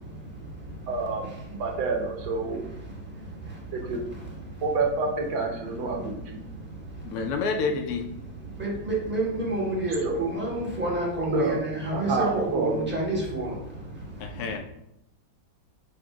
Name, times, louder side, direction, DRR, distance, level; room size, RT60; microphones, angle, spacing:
voice 1, 0.9-1.2 1.6-2.7 3.7-4.0 4.6-6.2 10.0-10.2 11.2-11.6 11.9-12.7, right 3 dB, 85° right, 1 dB, 1.6 m, -28 dB
voice 2, 7.0-8.0 14.2-14.6, left 4 dB, 75° left, 4 dB, 0.9 m, -28 dB
voice 3, 8.6-13.5, right 2 dB, 10° right, -5 dB, 0.8 m, -28 dB
4.9 x 2.1 x 4.6 m, 0.80 s
omnidirectional pair, 2.1 m